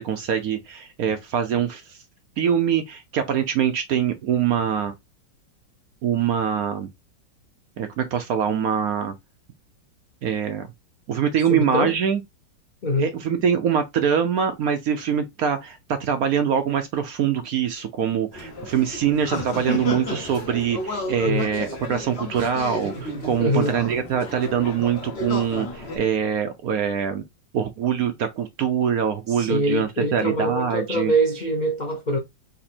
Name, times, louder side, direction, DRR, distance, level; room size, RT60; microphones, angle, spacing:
voice 1, 0.0-2.0 2.4-4.9 6.0-6.9 7.8-9.1 10.2-10.7 11.1-12.2 13.0-27.2 27.5-31.1, right 8 dB, 70° right, 0.9 m, -24 dB
voice 2, 11.5-12.0 12.8-13.1 21.2-21.5 23.4-23.7 29.3-32.2, equal, 75° left, 0.4 m, -24 dB
sound 1, 18.3-26.0, left 2 dB, 35° left, 1.5 m, -32 dB
4.1 x 2.6 x 4.3 m
omnidirectional pair, 2.0 m